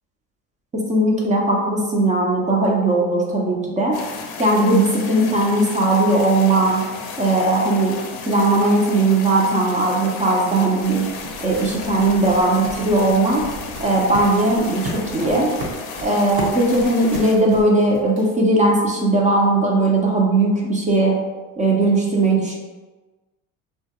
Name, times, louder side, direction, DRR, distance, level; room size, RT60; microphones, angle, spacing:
voice 1, 0.7-4.0 4.4-6.8 7.2-8.0 8.3-11.0 11.4-13.4 13.8-15.5 16.0-21.2 21.6-22.5, right 2 dB, 20° right, -2 dB, 0.5 m, -18 dB
sound 1, 3.9-17.4, left 5 dB, 55° left, 0.6 m, -34 dB
sound 2, 10.0-18.6, right 1 dB, 60° right, 1.2 m, -35 dB
3.0 x 2.3 x 2.8 m, 1.2 s
supercardioid pair, 105°, 41 cm